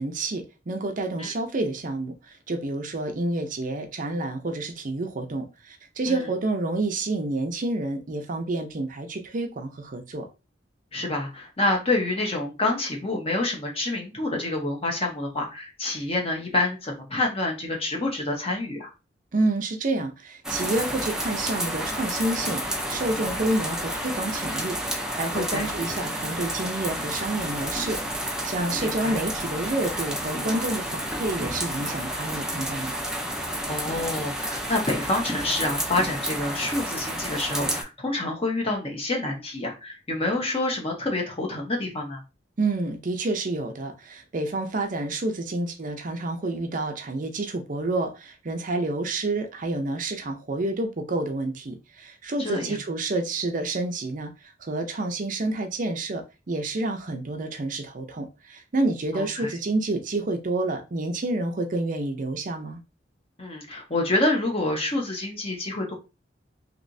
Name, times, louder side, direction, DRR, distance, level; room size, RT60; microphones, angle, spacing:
voice 1, 0.0-10.3 19.3-33.0 42.6-54.3 54.6-62.8, right 2 dB, 45° right, 0.6 m, -29 dB
voice 2, 10.9-18.9 25.3-25.7 28.8-29.2 33.7-42.2 52.4-52.8 59.1-59.5 63.4-65.9, left 2 dB, 35° left, 1.0 m, -27 dB
sound 1, 20.4-37.8, equal, 5° right, 0.5 m, -30 dB
3.1 x 2.9 x 2.6 m
head